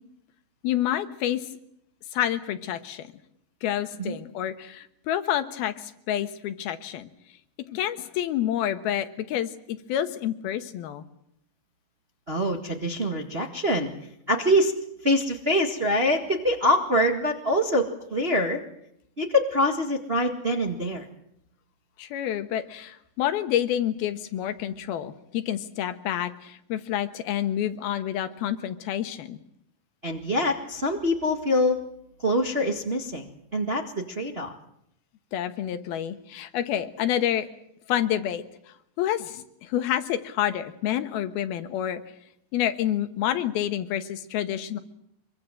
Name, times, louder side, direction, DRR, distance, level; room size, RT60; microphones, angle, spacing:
voice 1, 0.6-1.5 2.1-3.1 3.6-7.1 7.7-11.0 22.0-29.4 35.3-37.5 37.9-38.4 39.0-42.0 42.5-44.8, left 11 dB, 85° left, 10 dB, 3.2 m, -28 dB
voice 2, 12.3-13.9 14.3-14.7 15.0-18.6 19.2-21.0 30.0-31.8 32.2-33.2 33.5-33.8 34.1-34.5, left 1 dB, 30° right, 3 dB, 1.1 m, -24 dB
25.0 x 23.0 x 7.6 m, 0.77 s
omnidirectional pair, 4.3 m